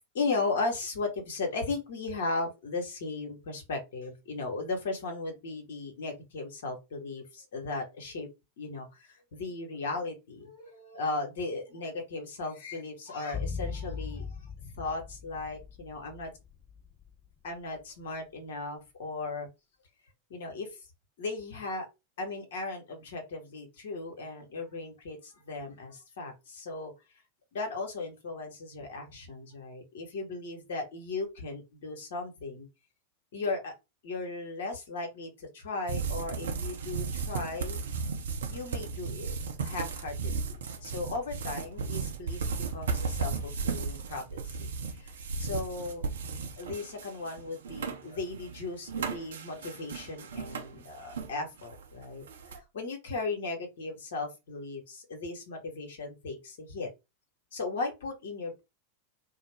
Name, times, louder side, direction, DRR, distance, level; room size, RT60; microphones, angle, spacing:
voice 1, 0.1-8.3 8.6-14.3 14.6-16.3 17.4-19.5 20.3-20.7 21.2-21.9 22.2-26.9 27.5-32.7 33.3-33.7 34.0-37.8 38.5-39.3 39.6-42.4 42.7-45.1 45.4-46.1 46.6-52.2 52.7-56.9 57.5-58.6, left 3 dB, 60° left, 0.9 m, -36 dB
sound 1, 13.3-17.6 17.8-17.9, left 5 dB, 20° left, 0.4 m, -39 dB
sound 2, 35.9-51.3 51.6-52.6, right 5 dB, 65° right, 0.5 m, -35 dB
2.4 x 2.0 x 3.1 m
figure-of-eight pair, 90°, 0 cm